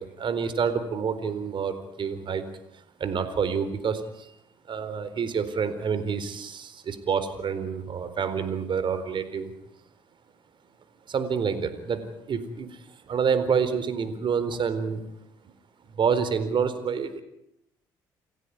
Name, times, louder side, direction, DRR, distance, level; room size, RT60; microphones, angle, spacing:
voice 1, 0.0-2.4 3.0-4.3 4.7-9.5 11.1-15.0 15.9-17.2, right 6 dB, 55° right, 12 dB, 4.2 m, -28 dB
29.5 x 15.5 x 9.7 m, 0.79 s
hypercardioid pair, 60°, 10 cm